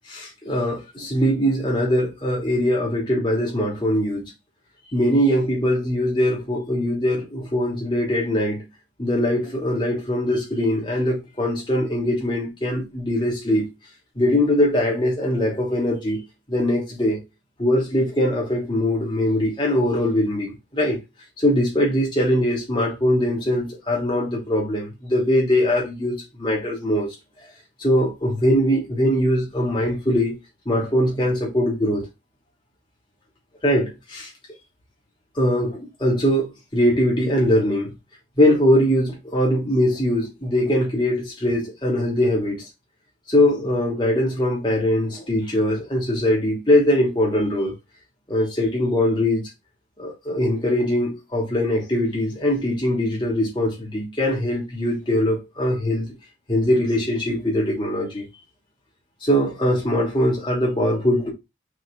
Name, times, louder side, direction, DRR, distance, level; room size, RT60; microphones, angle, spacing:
voice 1, 0.1-4.2 4.9-8.7 9.0-13.7 14.1-16.2 16.5-17.2 17.6-21.0 21.4-27.1 27.8-30.3 30.6-32.0 33.6-34.3 35.3-37.9 38.4-42.6 43.3-47.7 48.3-49.4 50.0-56.1 56.5-58.2 59.2-61.3, left 1 dB, 25° left, 3.2 m, -21 dB
6.5 x 4.2 x 4.1 m
head